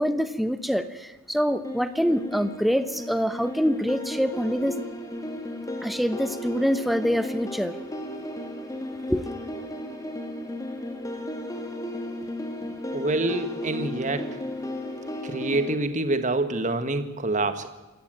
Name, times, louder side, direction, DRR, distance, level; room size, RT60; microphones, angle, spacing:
voice 1, 0.0-4.7 5.8-7.8 9.1-9.3, equal, ahead, 11 dB, 1.0 m, -25 dB
sound 1, 1.6-15.8, left 1 dB, 15° left, 2.7 m, -35 dB
voice 2, 12.9-14.4 15.2-17.7, right 2 dB, 35° right, 10 dB, 1.7 m, -26 dB
26.5 x 14.5 x 9.2 m, 1.2 s
head